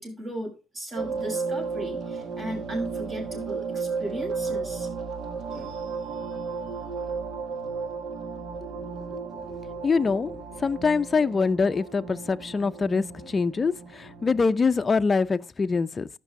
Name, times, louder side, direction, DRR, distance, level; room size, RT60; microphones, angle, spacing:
voice 1, 0.0-4.9 5.5-5.8, right 1 dB, 40° right, 7.0 m, -36 dB
sound 1, 1.0-14.5, right 4 dB, 70° right, 1.4 m, -34 dB
voice 2, 8.6-9.2 9.5-9.6 9.8-16.1, left 4 dB, 35° left, 0.5 m, -25 dB
15.0 x 6.1 x 3.7 m
cardioid pair, 90°, 0 cm